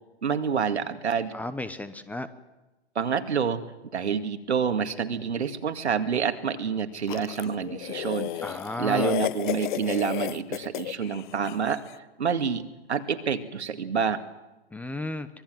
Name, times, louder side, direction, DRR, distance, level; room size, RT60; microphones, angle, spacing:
voice 1, 0.2-1.3 3.0-3.6 3.9-11.8 12.2-14.2, right 6 dB, 85° right, 7 dB, 2.2 m, -28 dB
voice 2, 1.3-2.3 8.4-9.1 14.7-15.3, left 2 dB, 5° left, 13 dB, 0.9 m, -33 dB
sound 1, 7.1-11.8, left 14 dB, 50° left, 0.9 m, -32 dB
25.0 x 20.5 x 7.7 m, 1.1 s
hypercardioid pair, 125°, 33 cm